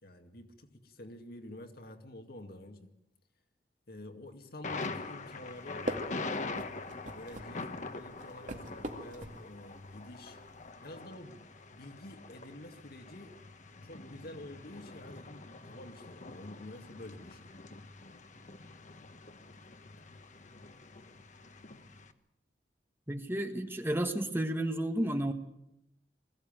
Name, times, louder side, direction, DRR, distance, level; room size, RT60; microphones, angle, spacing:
voice 1, 0.0-2.9 3.9-6.7 7.1-10.4 10.8-13.4 13.8-17.5, left 1 dB, 60° left, 2.2 m, -49 dB
Thunder, 4.6-22.1, left 3 dB, 45° left, 1.2 m, -44 dB
sound 1, 5.5-10.7, right 1 dB, 45° right, 2.2 m, -44 dB
voice 2, 23.1-25.3, right 1 dB, 15° right, 1.4 m, -32 dB
21.5 x 15.5 x 9.2 m
head